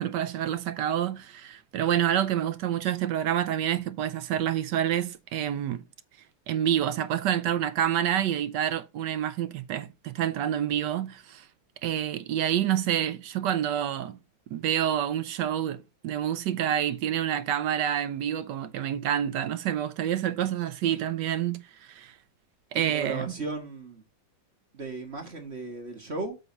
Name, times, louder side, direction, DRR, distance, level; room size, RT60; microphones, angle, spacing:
voice 1, 0.0-5.8 6.5-11.5 11.8-14.2 14.5-22.1 22.7-23.3, right 10 dB, 75° right, 1.2 m, -28 dB
voice 2, 22.7-24.0 24.7-26.4, right 3 dB, 35° right, 1.8 m, -36 dB
7.9 x 3.9 x 5.1 m
omnidirectional pair, 2.0 m